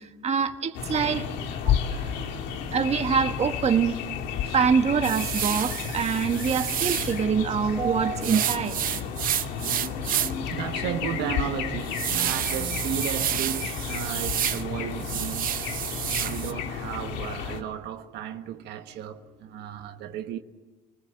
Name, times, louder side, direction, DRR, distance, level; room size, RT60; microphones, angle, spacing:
voice 1, 0.2-1.2 2.7-3.9 4.5-8.8, right 6 dB, 40° right, 1.6 m, -24 dB
sound 1, 0.7-17.6, left 7 dB, 90° left, 2.5 m, -32 dB
voice 2, 1.6-2.7 4.4-4.6 9.3-15.7 16.2-20.4, right 10 dB, 85° right, 1.5 m, -35 dB
sound 2, 5.0-7.2 8.2-10.5 10.9-11.0 11.5-14.6 14.9-16.5, right 11 dB, 55° right, 0.8 m, -29 dB
29.0 x 20.5 x 9.1 m
cardioid pair, 110°, 17 cm